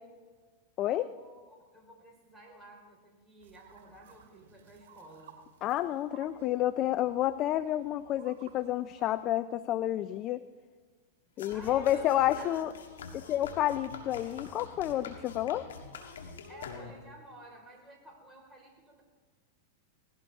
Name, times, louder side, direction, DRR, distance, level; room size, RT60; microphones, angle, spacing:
voice 1, 0.8-5.4 11.4-12.1 12.4-12.7 16.5-19.0, equal, 5° right, -2 dB, 4.8 m, -53 dB
sound 1, 3.4-9.2, right 8 dB, 65° right, 2.6 m, -57 dB
voice 2, 5.6-10.4 11.4-12.7 13.1-15.7, left 13 dB, 40° left, 14 dB, 0.5 m, -30 dB
sound 2, 11.4-17.2, left 5 dB, 85° left, 2.1 m, -45 dB
19.5 x 16.5 x 3.7 m, 1.5 s
hypercardioid pair, 115°, 0 cm